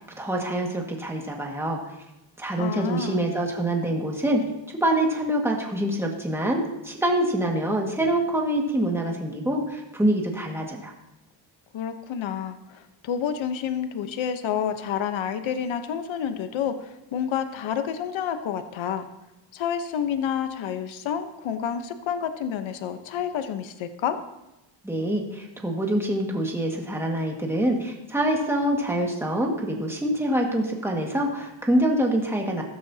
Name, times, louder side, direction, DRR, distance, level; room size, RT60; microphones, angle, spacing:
voice 1, 0.0-1.8 2.4-4.4 4.8-10.9 24.8-32.6, right 1 dB, 5° right, 0 dB, 1.9 m, -25 dB
voice 2, 2.6-3.3 11.7-19.1 19.5-24.2, left 8 dB, 75° left, 9 dB, 1.1 m, -29 dB
14.5 x 13.0 x 2.8 m, 0.96 s
cardioid pair, 130°, 47 cm